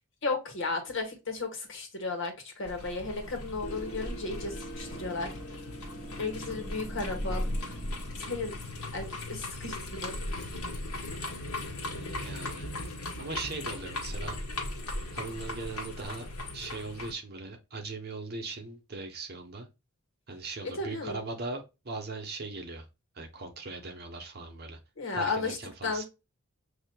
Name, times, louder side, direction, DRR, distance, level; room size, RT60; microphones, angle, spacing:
voice 1, 0.2-5.3 6.2-7.7 8.2-8.5 8.9-10.4 20.6-21.2 25.0-25.6 25.8-26.0, left 3 dB, 55° left, 1.4 m, -34 dB
Amish Buggy, 2.6-17.1, left 1 dB, 80° left, 1.4 m, -37 dB
sound 1, 3.6-10.2, right 1 dB, 30° left, 1.0 m, -45 dB
voice 2, 11.8-12.7 13.2-14.4 15.1-16.3 16.5-19.7 20.3-22.9 23.1-24.8 25.1-26.0, right 3 dB, 45° right, 0.9 m, -39 dB
6.3 x 2.8 x 2.2 m
head